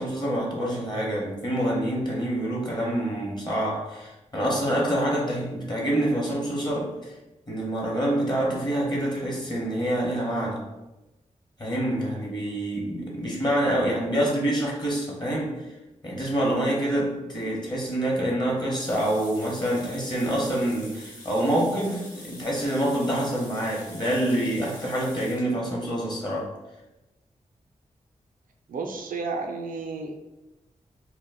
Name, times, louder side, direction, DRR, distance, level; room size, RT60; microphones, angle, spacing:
voice 1, 0.0-7.1 7.5-10.7 11.6-15.6 16.0-26.5, right 1 dB, 30° left, -3 dB, 0.9 m, -26 dB
sound 1, 18.8-25.5, left 1 dB, 70° left, 0.9 m, -46 dB
voice 2, 28.7-30.1, right 4 dB, 80° right, 2 dB, 0.4 m, -32 dB
2.1 x 2.0 x 3.3 m, 1.0 s
cardioid pair, 50°, 14 cm